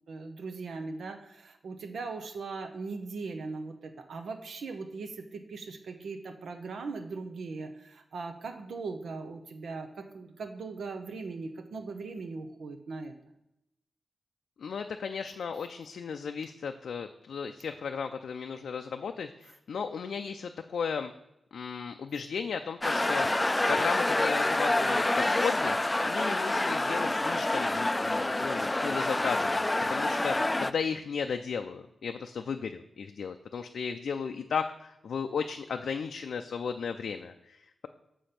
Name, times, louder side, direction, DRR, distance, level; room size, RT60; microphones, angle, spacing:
voice 1, 0.1-13.1, right 4 dB, 90° right, 5 dB, 0.7 m, -39 dB
voice 2, 14.6-21.1 21.5-25.8 26.1-37.9, left 6 dB, 90° left, 6 dB, 0.4 m, -35 dB
sound 1, 22.8-30.7, left 2 dB, 20° left, 0.3 m, -27 dB
6.9 x 5.2 x 5.7 m, 0.83 s
wide cardioid pair, 105°, 0 cm